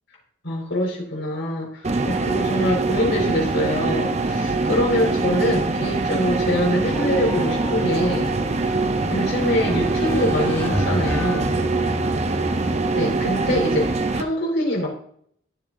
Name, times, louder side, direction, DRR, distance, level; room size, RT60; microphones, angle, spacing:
voice 1, 0.4-8.3 9.1-11.6 12.9-14.9, left 1 dB, 65° left, -2 dB, 4.4 m, -24 dB
sound 1, 1.8-14.2, right 3 dB, 30° right, 0.6 m, -23 dB
sound 2, 6.9-12.8, equal, 10° left, 2.4 m, -31 dB
15.5 x 7.4 x 2.6 m, 0.64 s
head